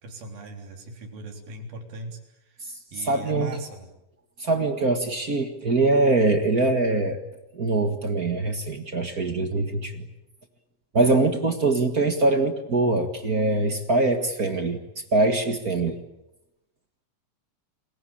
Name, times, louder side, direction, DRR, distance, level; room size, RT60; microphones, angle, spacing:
voice 1, 0.0-2.6 2.9-3.9, right 2 dB, 85° right, 4 dB, 5.5 m, -38 dB
voice 2, 3.0-3.5 4.4-7.2 7.5-10.1 10.9-14.8 15.1-16.0, right 2 dB, 35° right, 7 dB, 1.5 m, -23 dB
29.0 x 21.5 x 8.9 m, 0.89 s
omnidirectional pair, 4.1 m